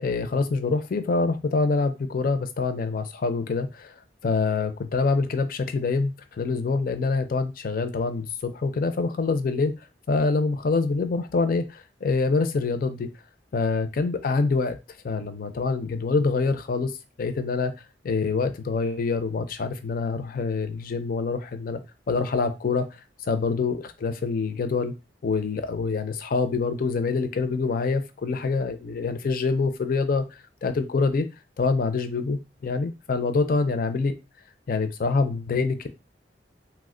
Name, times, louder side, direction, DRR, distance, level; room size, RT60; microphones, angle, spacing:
voice 1, 0.0-3.9 4.2-9.7 10.1-13.1 13.5-14.8 15.0-16.9 17.2-17.7 18.0-21.8 22.1-22.9 23.3-24.9 25.2-30.2 30.6-31.3 31.6-34.1 34.7-35.9, left 4 dB, 55° left, 10 dB, 0.4 m, -25 dB
2.8 x 2.1 x 3.7 m, 0.26 s
head